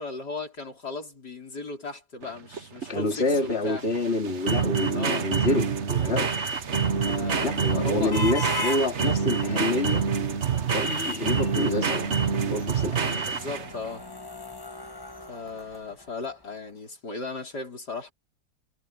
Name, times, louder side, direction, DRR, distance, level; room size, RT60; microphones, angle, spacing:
voice 1, 0.0-3.8 4.9-5.3 7.0-8.5 13.2-14.0 15.3-18.1, left 3 dB, 70° left, 5.6 m, -37 dB
sound 1, 2.2-13.9, right 6 dB, 45° right, 1.3 m, -27 dB
voice 2, 2.9-6.3 7.4-10.0 10.7-12.1 12.5-13.2, left 2 dB, 35° left, 3.0 m, -27 dB
sound 2, 6.1-16.3, left 1 dB, 15° left, 1.2 m, -39 dB
omnidirectional pair, 1.8 m